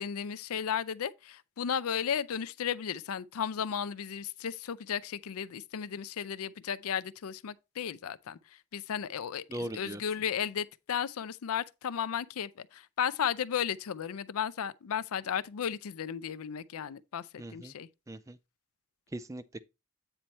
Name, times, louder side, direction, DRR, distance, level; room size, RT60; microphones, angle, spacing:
voice 1, 0.0-8.4 8.7-17.9, left 8 dB, 75° left, 0.4 m, -34 dB
voice 2, 9.5-10.0 17.4-17.7 18.1-18.4 19.1-19.6, right 1 dB, 15° right, 0.3 m, -39 dB
9.1 x 4.4 x 4.1 m
head